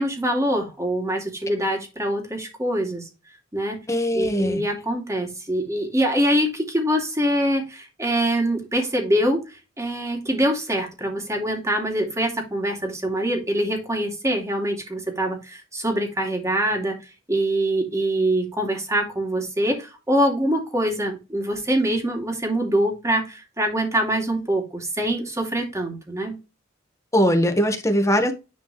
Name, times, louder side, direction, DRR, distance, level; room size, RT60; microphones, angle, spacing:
voice 1, 0.0-3.1 3.5-3.8 4.1-9.4 9.8-17.0 17.3-26.4, right 1 dB, 15° right, 2.7 m, -24 dB
voice 2, 3.9-4.6 27.1-28.3, equal, 15° left, 1.5 m, -20 dB
10.5 x 4.4 x 3.2 m
head